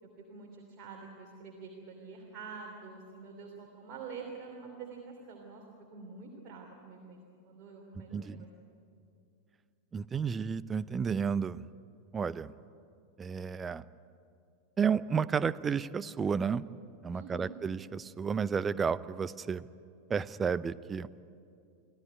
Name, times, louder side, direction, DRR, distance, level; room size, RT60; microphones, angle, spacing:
voice 1, 0.0-5.6 5.9-8.5 17.1-17.5, right 4 dB, 35° right, 0 dB, 3.1 m, -47 dB
voice 2, 8.1-8.5 9.9-11.7 12.1-12.5 13.2-13.8 14.8-16.6 17.0-19.7 20.1-21.1, right 6 dB, 20° right, 18 dB, 0.6 m, -32 dB
25.5 x 15.0 x 9.8 m, 2.4 s
figure-of-eight pair, 90°, 0 cm